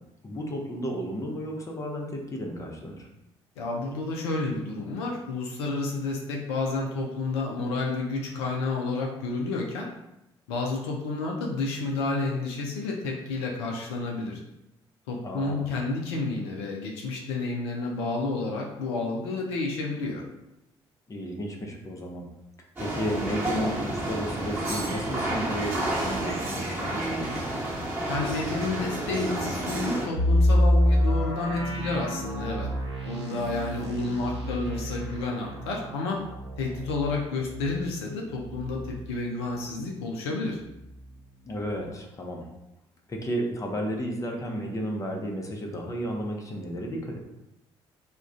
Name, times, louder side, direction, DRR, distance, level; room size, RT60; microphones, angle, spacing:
voice 1, 0.2-3.1 15.2-15.7 21.1-22.3 22.8-27.4 41.4-42.5 43.1-47.2, equal, 25° left, 1 dB, 0.6 m, -33 dB
voice 2, 3.6-9.9 10.5-14.4 15.1-20.2 28.1-32.7 33.1-36.2 36.6-40.6, left 3 dB, 70° left, -1 dB, 0.4 m, -30 dB
sound 1, 22.8-30.1, right 1 dB, 15° right, 1.0 m, -30 dB
sound 2, 30.2-39.9 40.2-40.3 40.8-41.1, left 1 dB, 85° right, 0.5 m, -27 dB
2.3 x 2.2 x 3.6 m, 0.89 s
figure-of-eight pair, 50°, 14 cm